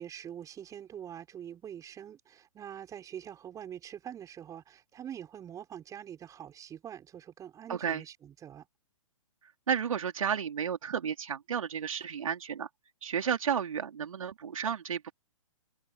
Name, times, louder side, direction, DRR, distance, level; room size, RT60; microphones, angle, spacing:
voice 1, 0.0-8.7, right 9 dB, 20° right, 5.6 m, -44 dB
voice 2, 7.7-8.0 9.7-12.7 13.0-15.1, right 7 dB, 65° right, 4.2 m, -32 dB
figure-of-eight pair, 120°, 18 cm